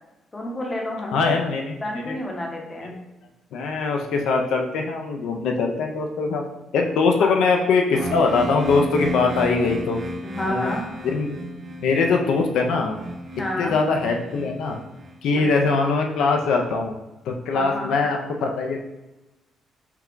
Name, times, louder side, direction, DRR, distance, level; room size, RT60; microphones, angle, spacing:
voice 1, 0.3-1.4 1.8-3.0 7.2-7.3 10.2-10.9 13.4-13.8 15.4-15.8 17.5-17.9, left 1 dB, 15° left, 0 dB, 0.7 m, -30 dB
voice 2, 1.1-1.8 2.1-2.2 3.5-6.4 6.7-10.0 10.5-10.7 11.0-11.4 11.8-13.0 13.6-14.8 15.2-16.9 17.3-18.9, left 4 dB, 70° left, 2 dB, 0.5 m, -22 dB
sound 1, 7.9-15.7, equal, 25° right, 0.4 m, -34 dB
5.7 x 2.3 x 3.7 m, 1.0 s
cardioid pair, 165°, 0 cm